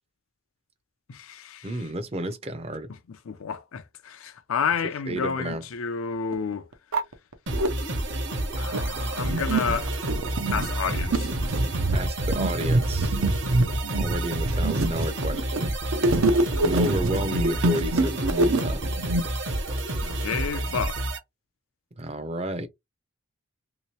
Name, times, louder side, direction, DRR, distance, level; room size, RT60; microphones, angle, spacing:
voice 1, 1.1-1.7 3.3-6.7 8.6-9.9 10.5-11.3 20.0-21.0, left 6 dB, 75° left, 0.5 m, -30 dB
voice 2, 1.6-2.9 5.1-5.6 11.9-13.2 14.0-15.7 16.6-18.9 22.0-22.7, right 1 dB, 30° right, 0.5 m, -31 dB
sound 1, 5.5-5.6 6.3-6.4 6.7-7.7 8.3-19.2, right 2 dB, 75° right, 0.7 m, -25 dB
sound 2, 7.5-21.2, right 1 dB, 55° right, 0.9 m, -29 dB
3.1 x 2.9 x 2.9 m
head